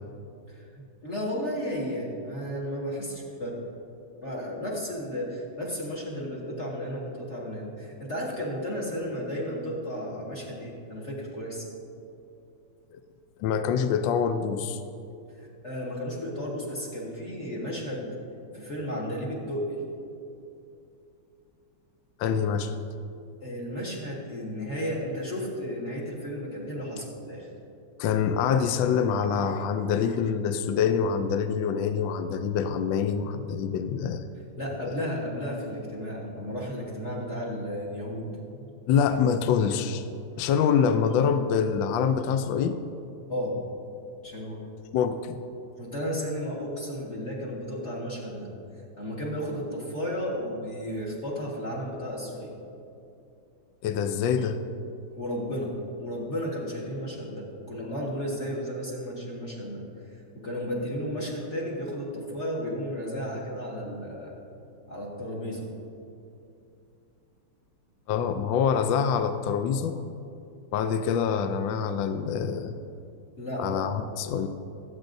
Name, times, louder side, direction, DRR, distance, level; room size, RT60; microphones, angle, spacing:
voice 1, 0.5-3.6 4.2-11.7 15.4-18.1 18.5-19.8 23.4-27.5 34.6-38.8 43.3-43.6 44.2-44.6 45.8-48.5 49.0-52.5 55.1-59.8 60.3-64.3 64.9-65.7 73.4-73.7, equal, 35° left, -4 dB, 1.7 m, -33 dB
voice 2, 13.4-14.8 22.2-22.8 28.0-34.2 34.8-34.9 38.9-40.0 40.4-42.8 44.9-45.4 53.8-54.6 68.1-70.0 70.7-72.7 73.6-74.5, left 7 dB, 75° left, 9 dB, 1.2 m, -25 dB
23.0 x 8.1 x 2.6 m, 2.6 s
omnidirectional pair, 2.2 m